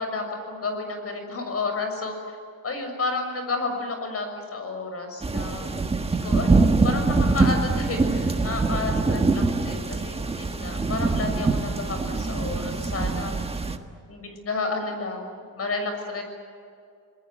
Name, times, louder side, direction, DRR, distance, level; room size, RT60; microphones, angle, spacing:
voice 1, 0.0-2.4 2.6-5.7 6.2-13.3 14.1-16.2, left 3 dB, 40° left, 5 dB, 6.6 m, -31 dB
sound 1, 5.2-13.8, right 3 dB, 15° right, 1.6 m, -24 dB
27.0 x 20.5 x 9.5 m, 2.4 s
cardioid pair, 105°, 37 cm